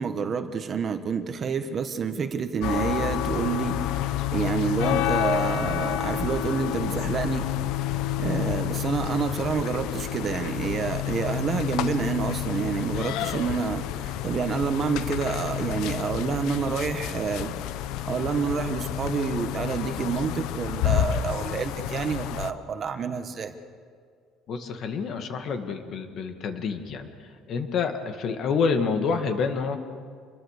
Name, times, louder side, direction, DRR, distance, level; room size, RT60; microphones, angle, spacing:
voice 1, 0.0-4.0 4.3-7.5 8.2-17.6 18.1-23.5, right 6 dB, 35° right, 8 dB, 1.4 m, -28 dB
sound 1, 2.6-22.5, left 12 dB, 75° left, 0.9 m, -29 dB
voice 2, 24.5-29.8, left 5 dB, 50° left, 6 dB, 2.0 m, -28 dB
27.5 x 22.5 x 6.7 m, 2.1 s
cardioid pair, 145°, 0 cm